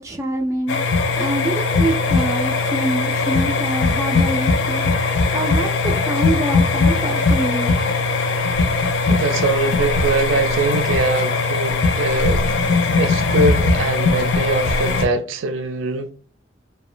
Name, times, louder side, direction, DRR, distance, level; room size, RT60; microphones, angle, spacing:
voice 1, 0.0-7.9, right 1 dB, 15° right, 0.4 m, -26 dB
sound 1, 0.7-15.1, left 3 dB, 70° left, 0.4 m, -19 dB
voice 2, 9.1-16.1, right 3 dB, 90° right, 0.4 m, -23 dB
2.9 x 2.1 x 2.4 m
head